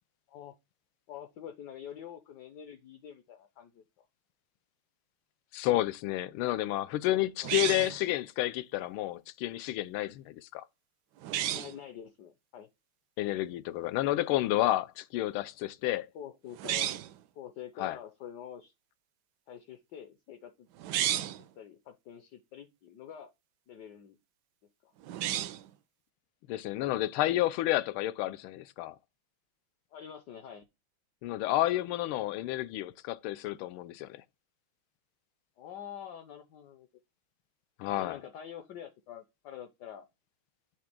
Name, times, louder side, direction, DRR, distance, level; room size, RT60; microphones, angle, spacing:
voice 1, 1.1-4.1 7.4-7.7 11.5-12.7 16.1-17.0 17.3-18.7 19.5-20.7 21.4-23.3 23.7-24.2 24.8-24.9 29.9-30.7 35.6-36.9 37.8-40.1, left 9 dB, 65° left, 1.2 m, -46 dB
voice 2, 5.5-10.6 13.2-16.1 17.8-18.0 26.5-28.9 31.2-34.2 37.8-38.2, left 15 dB, 85° left, 1.4 m, -30 dB
sound 1, 7.4-8.1 11.2-11.8 16.5-17.2 20.8-21.4 25.0-25.7, right 12 dB, 75° right, 1.0 m, -32 dB
6.4 x 3.4 x 5.9 m
omnidirectional pair, 2.3 m